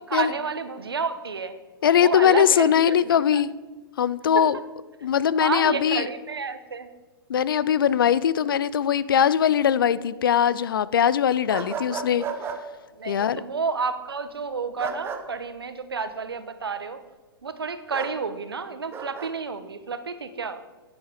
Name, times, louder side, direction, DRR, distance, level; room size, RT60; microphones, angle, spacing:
voice 1, 0.0-1.6 2.0-3.4 5.4-6.9 13.0-17.0 17.4-20.6, right 5 dB, 75° right, 11 dB, 1.0 m, -30 dB
voice 2, 1.8-3.5 4.0-4.6 5.0-6.1 7.3-12.2 13.1-13.4, left 9 dB, 65° left, 18 dB, 0.5 m, -21 dB
sound 1, 11.5-12.6 14.8-15.2 17.9-18.1 18.9-19.3, right 6 dB, 20° right, 1.1 m, -32 dB
10.0 x 9.3 x 5.0 m, 1.2 s
figure-of-eight pair, 115°, 13 cm